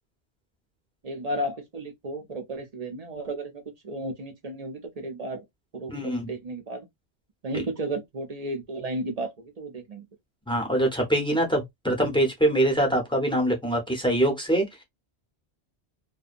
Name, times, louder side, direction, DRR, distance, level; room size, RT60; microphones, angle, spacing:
voice 1, 1.0-5.4 5.7-6.9 7.4-10.1, right 1 dB, 45° right, 0.6 m, -33 dB
voice 2, 5.9-6.3 7.5-7.6 10.5-14.6, right 1 dB, 5° left, 0.7 m, -24 dB
2.7 x 2.2 x 2.4 m
omnidirectional pair, 1.1 m